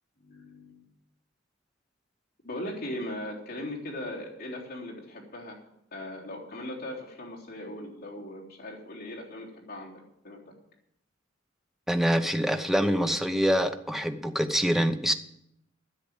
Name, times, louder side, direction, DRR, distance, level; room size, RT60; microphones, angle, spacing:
voice 1, 0.2-0.8 2.4-5.6 5.9-10.4, left 1 dB, 50° left, -4 dB, 3.6 m, -39 dB
voice 2, 11.9-15.1, equal, ahead, 7 dB, 0.7 m, -25 dB
10.5 x 7.8 x 9.0 m, 0.80 s
head